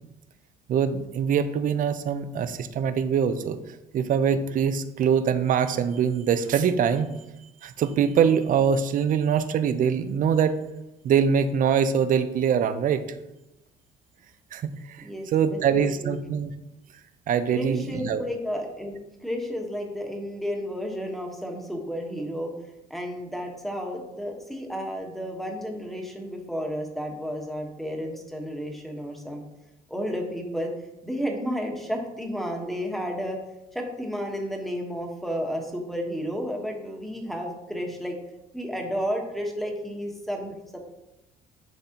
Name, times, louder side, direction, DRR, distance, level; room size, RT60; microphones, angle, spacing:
voice 1, 0.7-3.6 3.9-7.1 7.6-10.5 11.0-13.0 14.5-15.0 15.3-16.5 17.3-18.2, right 7 dB, 55° right, 11 dB, 0.6 m, -23 dB
voice 2, 15.0-16.1 17.5-22.5 22.9-29.4 29.9-30.7 31.0-33.4 33.7-38.2 38.5-40.8, equal, ahead, 1 dB, 1.3 m, -32 dB
10.0 x 4.0 x 2.9 m, 0.93 s
cardioid pair, 110°, 17 cm